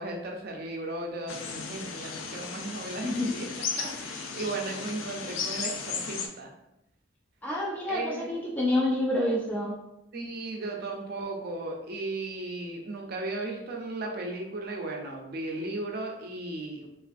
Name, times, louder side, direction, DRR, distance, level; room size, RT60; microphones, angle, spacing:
voice 1, 0.0-3.5 3.8-6.5 7.9-8.3 10.1-16.9, right 2 dB, 55° right, 1 dB, 0.5 m, -36 dB
sound 1, 1.3-6.3, left 5 dB, 85° left, 0.4 m, -35 dB
voice 2, 3.0-3.3 7.4-9.8, left 1 dB, 10° left, -3 dB, 0.3 m, -28 dB
3.1 x 2.4 x 2.5 m, 0.86 s
head